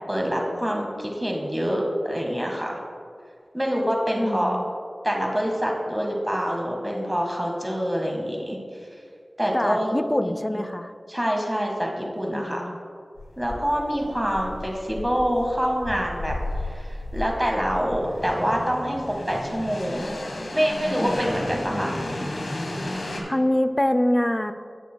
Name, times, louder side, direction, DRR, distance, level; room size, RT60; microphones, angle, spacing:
voice 1, 0.1-2.8 3.5-4.6 5.0-8.6 9.4-10.0 10.2-10.6 11.1-12.7 13.4-20.1 20.5-21.9, equal, 10° right, 0 dB, 1.6 m, -26 dB
voice 2, 4.2-4.7 9.5-10.9 12.3-12.8 21.0-21.3 23.2-24.5, left 1 dB, 25° left, 10 dB, 0.4 m, -25 dB
sound 1, 13.2-23.2, left 1 dB, 90° left, 1.3 m, -33 dB
16.5 x 6.6 x 2.2 m, 2.2 s
wide cardioid pair, 45°, 0 cm